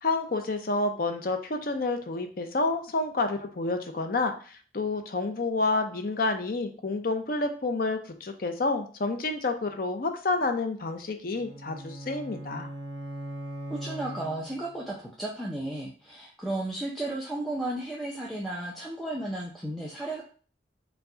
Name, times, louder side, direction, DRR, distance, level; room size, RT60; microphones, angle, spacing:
voice 1, 0.0-12.7, left 3 dB, 50° left, 6 dB, 0.6 m, -29 dB
sound 1, 11.3-14.9, right 1 dB, 75° right, 1.3 m, -40 dB
voice 2, 13.7-20.2, right 1 dB, ahead, -4 dB, 0.5 m, -34 dB
4.6 x 2.3 x 3.8 m, 0.40 s
head